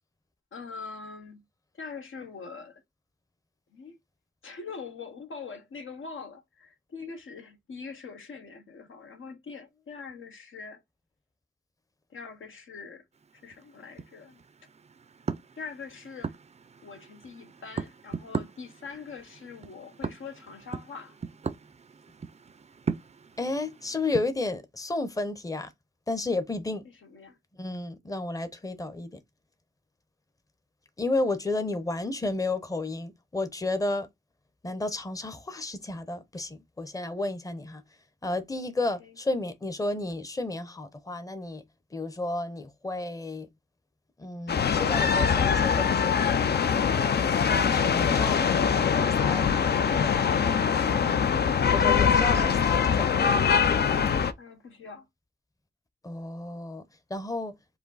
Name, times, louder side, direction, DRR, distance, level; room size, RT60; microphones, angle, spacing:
voice 1, 0.5-1.4 1.7-2.8 3.7-4.0 4.4-10.8 12.1-13.0 13.4-14.4 15.6-16.4 16.8-21.1 26.8-27.4 39.0-39.1 49.8-51.2 54.4-55.1, left 5 dB, 75° left, 1.1 m, -43 dB
sound 1, 13.1-24.3, right 5 dB, 35° right, 0.4 m, -39 dB
voice 2, 23.4-25.7 26.1-26.8 27.6-29.2 31.0-34.1 34.6-37.8 38.2-41.6 41.9-43.5 44.2-46.3 47.6-48.4 49.0-49.5 51.7-53.2 56.0-56.8 57.1-57.5, left 2 dB, 15° left, 0.7 m, -32 dB
sound 2, 44.5-54.3, left 7 dB, 55° left, 0.5 m, -23 dB
4.9 x 2.7 x 4.0 m
wide cardioid pair, 140°, 21 cm